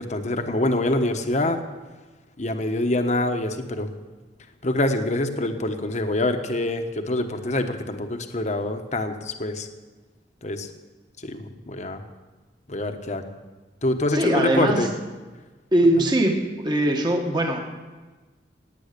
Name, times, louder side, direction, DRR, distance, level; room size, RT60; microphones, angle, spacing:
voice 1, 0.0-1.6 2.4-3.9 4.6-9.7 10.4-10.7 11.2-12.0 12.7-13.2 13.8-14.9, left 1 dB, 40° left, 6 dB, 1.1 m, -25 dB
voice 2, 14.1-14.9 15.7-17.6, right 1 dB, 25° right, 2 dB, 1.4 m, -21 dB
18.5 x 9.3 x 6.8 m, 1.3 s
head